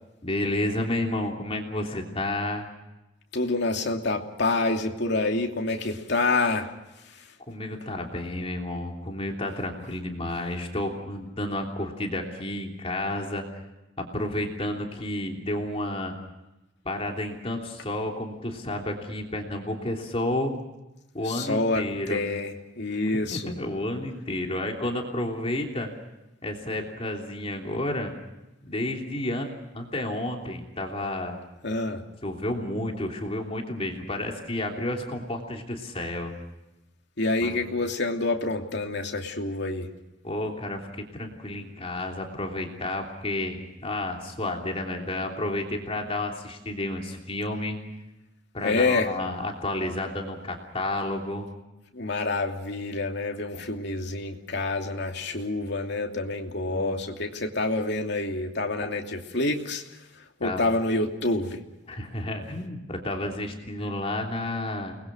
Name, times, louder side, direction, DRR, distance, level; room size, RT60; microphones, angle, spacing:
voice 1, 0.2-2.7 7.5-13.5 14.0-16.2 16.8-20.5 21.1-22.2 22.9-25.9 26.4-28.1 28.6-29.5 29.7-31.4 32.2-36.3 37.4-37.6 40.2-47.8 48.5-51.5 53.5-53.6 56.6-56.9 58.8-58.9 60.4-60.7 61.9-64.9, left 1 dB, 30° left, 1 dB, 3.2 m, -31 dB
voice 2, 3.3-6.7 21.3-21.8 22.1-23.5 31.6-32.0 37.2-39.9 48.6-49.1 51.9-59.8 60.4-61.6, left 2 dB, 65° left, 2 dB, 2.8 m, -27 dB
29.5 x 21.0 x 6.2 m, 0.98 s
head